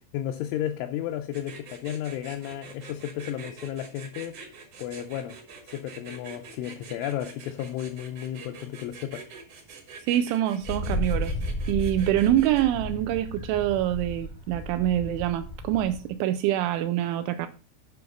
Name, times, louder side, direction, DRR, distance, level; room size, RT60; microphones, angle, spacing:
voice 1, 0.1-4.4 4.8-5.4 5.7-9.3, left 11 dB, 80° left, 2.8 m, -33 dB
sound 1, 1.3-12.6, right 5 dB, 60° right, 1.5 m, -45 dB
voice 2, 10.1-11.3 11.7-17.5, right 12 dB, 85° right, 2.8 m, -25 dB
Wind, 10.6-16.1, equal, 60° left, 0.9 m, -33 dB
9.3 x 5.8 x 5.3 m
omnidirectional pair, 5.9 m